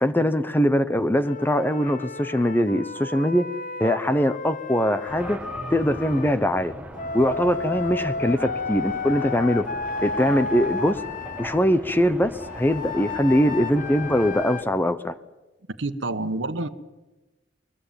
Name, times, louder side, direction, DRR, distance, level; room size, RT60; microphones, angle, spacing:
voice 1, 0.0-3.4 3.8-5.4 5.7-6.7 7.1-9.6 10.0-11.0 11.4-15.1, equal, 10° left, 11 dB, 0.9 m, -22 dB
Wind instrument woodwind instrument, 1.2-6.3 7.0-11.6 12.4-14.6, left 4 dB, 45° left, 1.1 m, -33 dB
sound 1, 5.1-14.5, equal, 5° right, 1.7 m, -39 dB
voice 2, 15.8-16.7, right 2 dB, 80° right, 10 dB, 1.5 m, -28 dB
22.0 x 22.0 x 9.0 m, 1.1 s
head